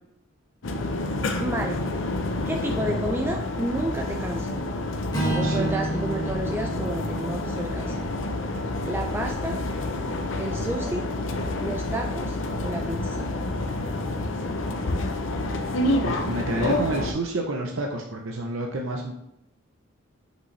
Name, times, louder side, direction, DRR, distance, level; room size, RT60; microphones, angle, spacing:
sound 1, 0.6-17.1, left 2 dB, 65° left, 0.6 m, -28 dB
voice 1, 1.4-1.8 2.5-4.5 5.2-8.0 8.9-9.6 10.4-11.1 11.6-13.3, right 1 dB, 10° right, 2 dB, 0.4 m, -31 dB
Strum, 5.1-9.5, right 1 dB, 20° left, 1.6 m, -32 dB
voice 2, 5.4-5.7 14.8-14.9 16.0-19.1, right 2 dB, 70° right, 1 dB, 0.7 m, -29 dB
6.2 x 5.3 x 3.2 m, 0.83 s
head